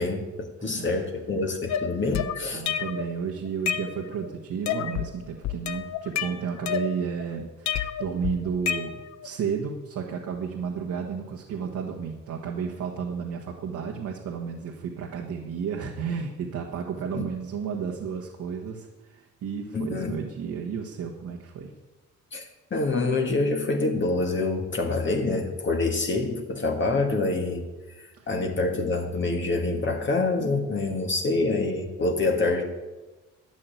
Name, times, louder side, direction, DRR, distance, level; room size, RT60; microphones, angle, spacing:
voice 1, 0.0-2.6 17.1-17.3 19.7-20.2 22.3-27.6 28.0-32.7, left 3 dB, 40° left, 2 dB, 1.7 m, -26 dB
voice 2, 0.6-1.0 2.5-8.9 9.2-21.7 28.1-28.3, right 6 dB, 70° right, 0 dB, 1.6 m, -32 dB
sound 1, 1.7-3.1 3.5-4.3 4.7-5.1 5.4-7.2 7.7-9.3, left 9 dB, 65° left, 0.8 m, -30 dB
12.0 x 6.6 x 9.3 m, 1.2 s
cardioid pair, 90°, 30 cm